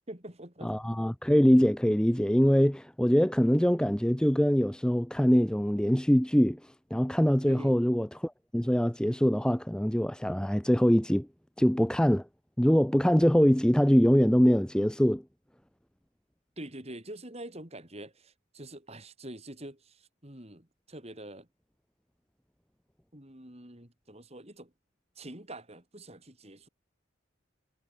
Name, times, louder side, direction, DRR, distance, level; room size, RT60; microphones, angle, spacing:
voice 1, 0.1-0.7 1.0-1.1 7.4-7.7 16.6-21.5 23.1-24.7 25.2-26.7, right 1 dB, 30° right, 4.0 m, -45 dB
voice 2, 0.6-6.6 6.9-11.3 11.6-12.2 12.6-15.2, equal, 5° left, 0.8 m, -23 dB
head